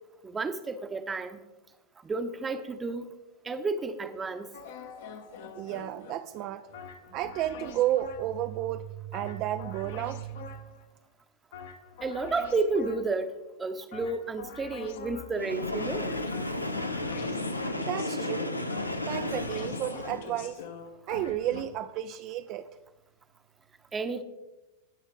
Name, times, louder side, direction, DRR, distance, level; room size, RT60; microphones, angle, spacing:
voice 1, 0.2-1.4 2.0-3.1 3.4-4.5 12.0-13.3 13.6-16.2 23.9-24.2, right 3 dB, 15° right, 10 dB, 0.8 m, -31 dB
sound 1, 4.5-8.5 9.1-10.9 11.5-13.3 13.9-21.6, left 6 dB, 55° left, 1.0 m, -44 dB
voice 2, 5.6-6.6 7.1-10.6 17.8-18.5 19.1-20.6 21.1-22.7, right 13 dB, 40° right, 9 dB, 0.4 m, -32 dB
Train, 15.3-20.3, left 2 dB, 85° left, 0.8 m, -33 dB
16.5 x 6.2 x 3.9 m, 1.1 s
figure-of-eight pair, 90°, 0 cm